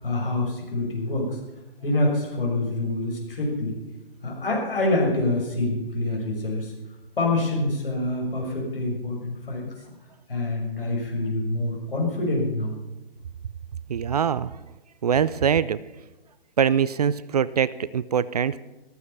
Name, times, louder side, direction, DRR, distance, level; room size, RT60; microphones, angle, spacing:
voice 1, 0.0-1.4 1.8-3.7 4.2-6.7 7.2-9.9 10.3-12.7, left 2 dB, 65° left, -1 dB, 6.5 m, -26 dB
voice 2, 13.9-14.5 15.0-15.8 16.6-18.6, right 7 dB, 40° right, 17 dB, 0.5 m, -23 dB
14.5 x 14.0 x 5.6 m, 1.0 s
figure-of-eight pair, 130°, 30 cm